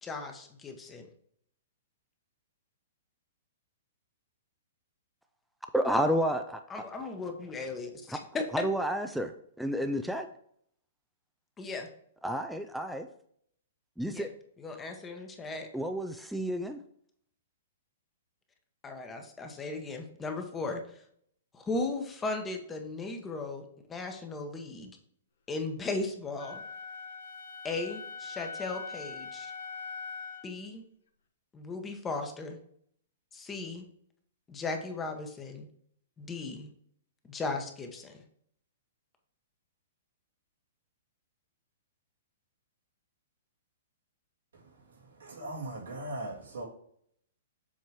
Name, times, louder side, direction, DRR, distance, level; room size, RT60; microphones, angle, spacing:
voice 1, 0.0-1.1 6.7-8.6 11.6-11.9 14.1-14.3 14.6-15.7 18.8-21.0 21.5-24.9 25.5-26.6 27.6-29.5 30.4-30.8 31.5-32.6 33.3-33.9 34.5-35.7 36.2-36.7 37.3-38.2, left 3 dB, 15° left, 5 dB, 1.0 m, -37 dB
voice 2, 5.7-6.6 8.5-9.3 9.6-10.3 12.2-13.1 14.0-14.3 15.7-16.8, equal, ahead, 5 dB, 0.4 m, -30 dB
Wind instrument woodwind instrument, 26.4-30.5, left 4 dB, 75° left, 1.1 m, -42 dB
voice 3, 45.3-46.7, right 1 dB, 80° right, -1 dB, 2.1 m, -38 dB
7.3 x 3.0 x 4.8 m, 0.65 s
hypercardioid pair, 130°, 0 cm